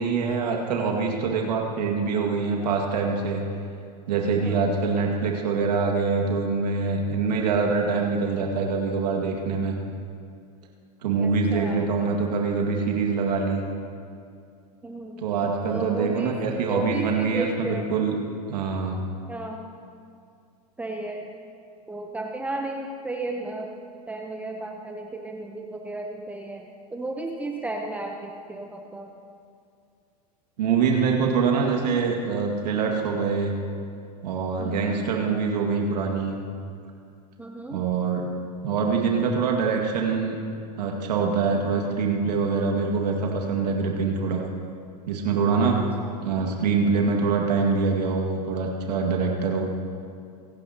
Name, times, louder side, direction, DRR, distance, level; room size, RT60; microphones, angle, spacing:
voice 1, 0.0-3.4 4.1-9.8 11.0-13.6 15.2-18.2 18.5-19.0 30.6-33.5 34.2-36.4 37.7-38.3 38.6-40.4 40.8-44.4 45.1-45.8 46.2-49.7, right 5 dB, 75° right, 1 dB, 2.1 m, -24 dB
voice 2, 11.2-11.9 14.8-15.2 15.7-16.4 16.7-17.9 19.3-19.6 20.8-21.3 21.9-23.7 24.1-26.6 26.9-29.1 34.6-34.9 37.4-37.8 46.0-46.1, right 2 dB, 5° right, 2 dB, 0.8 m, -33 dB
27.5 x 9.3 x 2.9 m, 2.4 s
hypercardioid pair, 125°, 21 cm